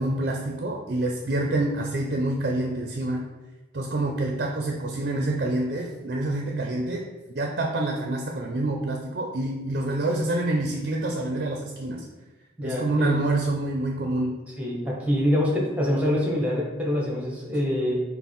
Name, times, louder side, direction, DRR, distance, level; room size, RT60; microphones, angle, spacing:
voice 1, 0.0-3.3 3.7-12.0 12.6-14.4, right 2 dB, 50° right, 1 dB, 0.4 m, -27 dB
voice 2, 12.6-13.1 14.6-17.9, equal, 10° right, -3 dB, 0.9 m, -25 dB
5.6 x 2.1 x 4.3 m, 1.1 s
head